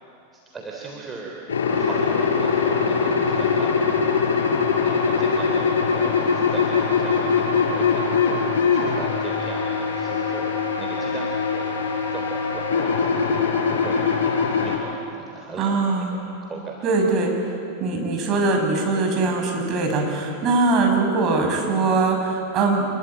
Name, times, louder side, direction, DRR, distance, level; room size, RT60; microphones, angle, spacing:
voice 1, 0.3-1.4 1.8-10.5 10.8-11.8 12.1-13.4 13.7-16.1 16.4-16.9, right 4 dB, 15° right, -2 dB, 3.6 m, -38 dB
sound 1, 1.5-14.8, left 5 dB, 65° left, 6.2 m, -22 dB
voice 2, 15.6-16.1 16.8-17.5 17.8-22.9, right 3 dB, 35° right, 1 dB, 6.4 m, -21 dB
27.5 x 22.0 x 9.0 m, 2.7 s
figure-of-eight pair, 90°, 0 cm